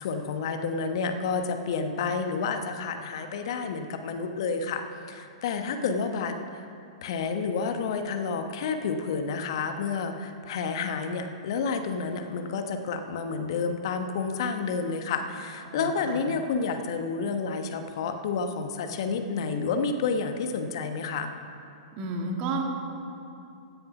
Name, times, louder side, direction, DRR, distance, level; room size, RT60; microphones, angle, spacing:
voice 1, 0.0-4.8 5.1-6.6 7.0-21.3, left 5 dB, 55° left, 6 dB, 1.1 m, -30 dB
voice 2, 15.7-16.2 21.9-22.6, right 3 dB, 40° right, 1 dB, 2.2 m, -32 dB
16.5 x 9.4 x 6.0 m, 2.6 s
figure-of-eight pair, 105°, 3 cm